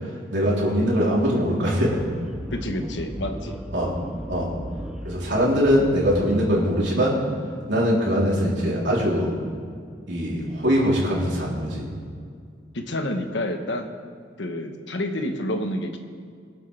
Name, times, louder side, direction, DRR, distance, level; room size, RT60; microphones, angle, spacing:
voice 1, 0.0-2.0 3.7-3.9 4.3-4.5 5.0-7.2 7.7-9.3 10.1-11.8, equal, 90° right, -5 dB, 3.5 m, -22 dB
sound 1, 1.9-6.4, equal, 5° right, 0.8 m, -36 dB
voice 2, 2.5-3.6 12.7-13.9 14.4-16.0, left 1 dB, 85° left, 5 dB, 1.2 m, -28 dB
24.0 x 8.1 x 3.4 m, 2.2 s
head